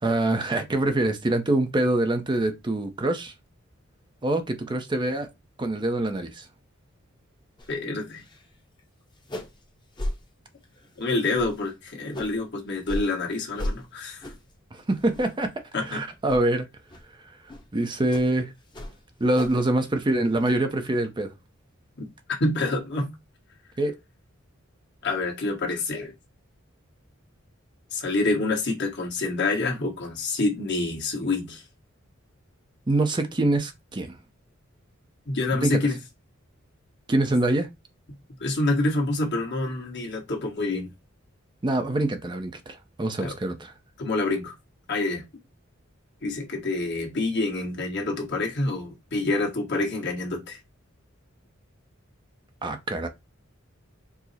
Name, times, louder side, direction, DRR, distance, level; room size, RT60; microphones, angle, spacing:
voice 1, 0.0-3.3 4.2-5.3 5.6-6.5 14.7-15.5 15.9-16.7 17.7-18.5 19.2-21.3 23.8-23.9 32.9-34.2 35.6-35.8 37.1-37.7 41.6-43.7 52.6-53.1, right 2 dB, 25° right, 0.5 m, -25 dB
sound 1, 7.6-7.8 8.1-8.5 8.8-8.9 9.2-9.6 9.9-10.2 10.6-10.9 11.3-12.4 12.8-13.1 13.5-13.8 14.2-14.5 14.9-15.5 15.8-16.0 16.3-16.4 16.9-17.0 17.5-17.7 18.1-18.3 18.7-19.7 20.0-20.5, left 1 dB, 25° left, 0.9 m, -35 dB
voice 2, 7.7-8.2 11.0-14.3 15.7-16.0 22.0-22.1 22.4-23.1 25.0-26.1 27.9-31.6 35.3-36.0 38.4-40.9 43.2-43.3 44.0-44.5 44.9-45.2 46.2-50.6, left 2 dB, 60° left, 1.4 m, -27 dB
4.6 x 2.0 x 4.0 m
head